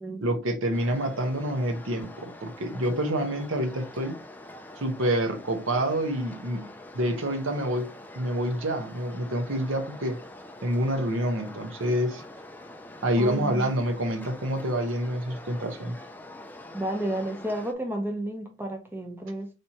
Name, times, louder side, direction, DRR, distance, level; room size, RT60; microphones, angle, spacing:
voice 1, 0.2-4.2 4.8-10.2 10.6-12.2 13.0-16.0, right 1 dB, 75° right, 0.9 m, -27 dB
sound 1, 0.7-17.7, left 1 dB, 10° left, 0.3 m, -45 dB
voice 2, 13.2-13.6 16.7-19.5, right 1 dB, 10° right, 0.8 m, -31 dB
4.2 x 3.4 x 2.9 m
head